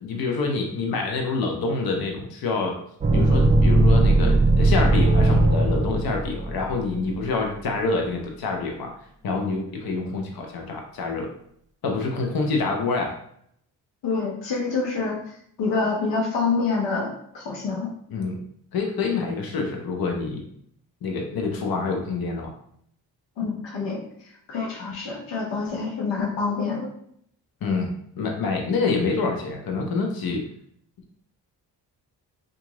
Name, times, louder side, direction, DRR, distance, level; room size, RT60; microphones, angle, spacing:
voice 1, 0.0-2.8 3.1-8.9 9.2-11.3 11.8-13.2 18.1-18.4 18.7-20.4 21.0-22.5 27.6-30.4, left 3 dB, 60° left, 2 dB, 0.9 m, -26 dB
sound 1, 3.0-7.1, right 2 dB, 20° right, 0.4 m, -19 dB
voice 2, 14.0-15.2 15.6-17.9 23.4-24.0 24.5-26.9, left 4 dB, 85° left, 0 dB, 0.8 m, -26 dB
2.9 x 2.6 x 3.7 m, 0.67 s
cardioid pair, 60°, 41 cm